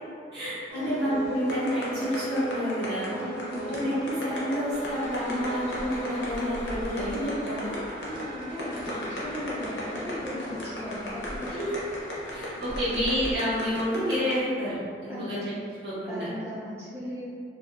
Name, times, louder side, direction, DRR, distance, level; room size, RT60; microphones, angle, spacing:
voice 1, 0.3-3.1 3.6-7.8 11.5-11.7 12.3-15.5 15.8-16.3, equal, 70° right, -11 dB, 1.0 m, -29 dB
sound 1, 0.7-6.5, right 1 dB, 15° left, 0.8 m, -38 dB
sound 2, 1.5-14.3, left 1 dB, 90° left, 0.6 m, -36 dB
voice 2, 3.1-4.0 8.0-11.6 12.1-12.9 15.1-15.4 16.1-17.3, equal, 15° right, -13 dB, 0.5 m, -38 dB
sound 3, 4.7-13.3, equal, 45° left, 0.6 m, -41 dB
2.5 x 2.3 x 2.4 m, 2.2 s
head